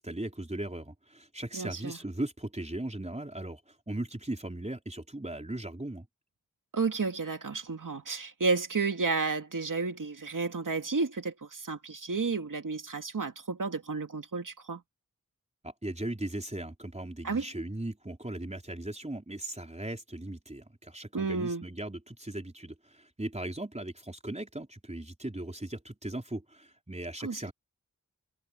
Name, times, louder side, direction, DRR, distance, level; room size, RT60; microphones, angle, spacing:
voice 1, 0.0-6.1 15.6-27.5, right 1 dB, 20° right, 4.2 m, -38 dB
voice 2, 1.5-2.0 6.7-14.8 17.2-17.4 21.1-21.6 27.2-27.5, right 4 dB, 75° right, 2.4 m, -32 dB
wide cardioid pair, 55°, 32 cm